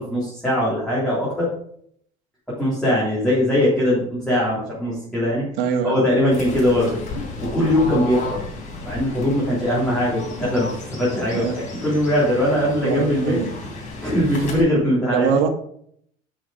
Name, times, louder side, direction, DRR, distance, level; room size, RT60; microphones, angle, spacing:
voice 1, 0.0-1.5 2.6-5.5 5.8-7.0 7.4-8.4 8.8-13.4 14.0-15.3, left 1 dB, ahead, -9 dB, 3.3 m, -21 dB
voice 2, 5.6-6.0 11.3-11.6 12.8-13.5 15.1-15.5, right 6 dB, 80° right, 5 dB, 1.4 m, -22 dB
Fowl / Bird, 6.3-14.6, left 2 dB, 45° left, 3.4 m, -33 dB
7.0 x 5.7 x 5.1 m, 0.67 s
cardioid pair, 135°, 19 cm